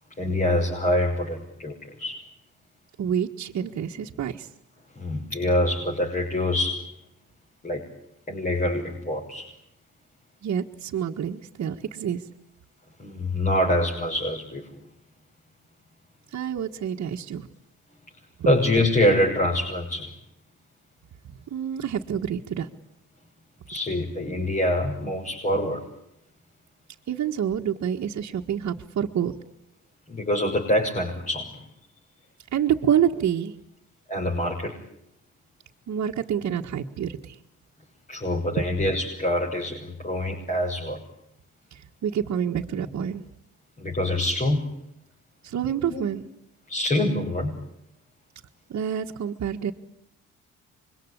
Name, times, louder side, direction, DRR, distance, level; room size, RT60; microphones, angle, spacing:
voice 1, 0.2-2.2 4.9-6.9 7.6-7.8 8.3-9.5 13.0-14.7 18.4-20.1 23.7-25.9 30.1-31.6 34.1-34.8 38.1-41.0 43.8-44.7 45.9-46.1 46.7-47.6, left 1 dB, 25° left, -1 dB, 6.5 m, -25 dB
voice 2, 3.0-4.5 10.4-12.2 16.3-17.5 21.5-22.7 27.1-29.3 32.5-33.5 35.9-37.3 42.0-43.2 45.4-46.3 48.7-49.7, right 9 dB, 60° right, -1 dB, 1.7 m, -27 dB
26.0 x 23.0 x 9.9 m, 0.77 s
cardioid pair, 90°, 30 cm